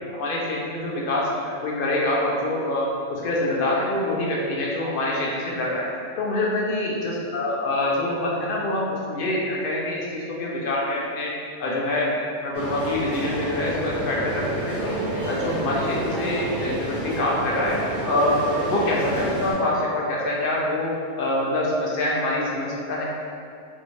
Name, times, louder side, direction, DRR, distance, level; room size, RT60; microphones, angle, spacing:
voice 1, 0.1-5.9 6.2-11.3 11.6-15.0 15.3-17.8 18.0-18.4 18.6-23.0, left 1 dB, 60° left, -4 dB, 0.6 m, -25 dB
sound 1, 12.5-19.5, right 1 dB, 15° right, 1.1 m, -29 dB
3.4 x 2.6 x 3.0 m, 2.4 s
omnidirectional pair, 1.3 m